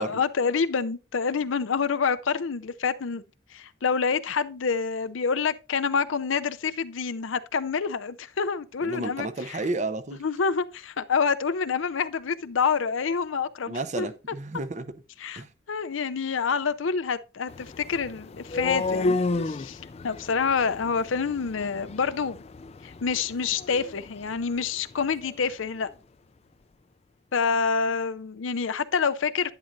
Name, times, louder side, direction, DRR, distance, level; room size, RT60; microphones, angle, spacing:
voice 1, 0.0-3.2 3.5-9.6 10.2-14.1 15.2-22.4 22.8-25.9 27.3-29.5, left 5 dB, 80° left, 0.6 m, -27 dB
voice 2, 8.8-10.2 13.7-14.9 15.3-15.5, right 2 dB, 35° right, 0.7 m, -32 dB
sound 1, 17.5-25.4, left 3 dB, 30° left, 0.4 m, -33 dB
10.5 x 9.9 x 2.6 m
head